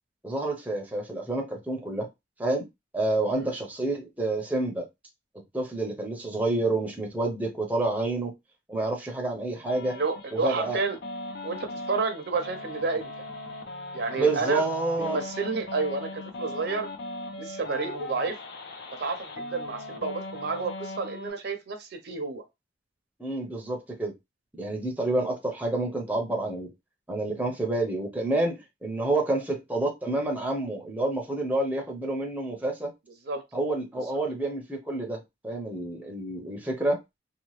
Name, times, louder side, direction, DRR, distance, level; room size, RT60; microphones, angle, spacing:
voice 1, 0.2-2.1 2.4-2.6 2.9-4.9 5.5-8.3 8.7-10.0 10.3-10.8 14.1-15.2 23.2-24.1 24.6-26.7 27.1-32.9 33.5-37.0, right 2 dB, 10° right, 0.6 m, -28 dB
sound 1, 9.7-21.3, left 2 dB, 60° left, 0.6 m, -39 dB
voice 2, 9.8-11.0 11.4-13.1 13.9-14.6 15.0-16.9 17.4-18.4 19.0-22.4 33.3-33.4, right 4 dB, 60° right, 0.6 m, -30 dB
2.8 x 2.2 x 3.0 m
head